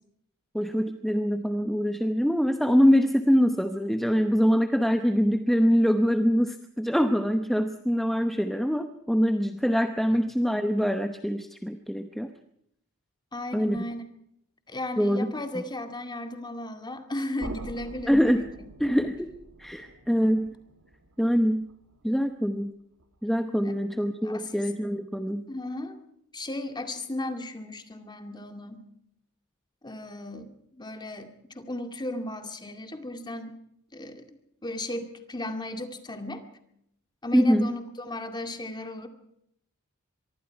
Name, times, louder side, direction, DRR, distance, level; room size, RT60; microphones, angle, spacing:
voice 1, 0.5-12.3 13.5-13.8 15.0-15.3 15.6-15.7 18.1-18.4 18.8-19.3 19.6-20.6 21.2-21.7 22.0-22.7 23.2-25.5 37.3-37.7, equal, ahead, 7 dB, 0.8 m, -24 dB
voice 2, 13.3-14.0 14.7-18.5 23.6-23.7 24.2-24.6 25.5-26.1 26.3-28.8 29.8-33.6 33.9-34.2 34.6-36.4 37.2-39.1, left 1 dB, 20° left, 7 dB, 2.2 m, -35 dB
sound 1, 17.4-23.3, right 1 dB, 70° right, 2.3 m, -45 dB
24.5 x 23.5 x 4.7 m, 0.74 s
head